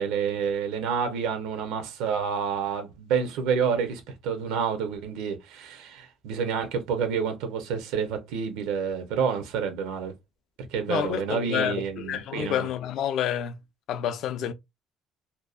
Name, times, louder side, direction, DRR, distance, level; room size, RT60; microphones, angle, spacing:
voice 1, 0.0-10.1 10.7-12.7, right 6 dB, 90° right, 0.6 m, -29 dB
voice 2, 10.9-13.6 13.9-14.5, left 10 dB, 60° left, 0.3 m, -29 dB
2.6 x 2.0 x 2.3 m
cardioid pair, 140°, 0 cm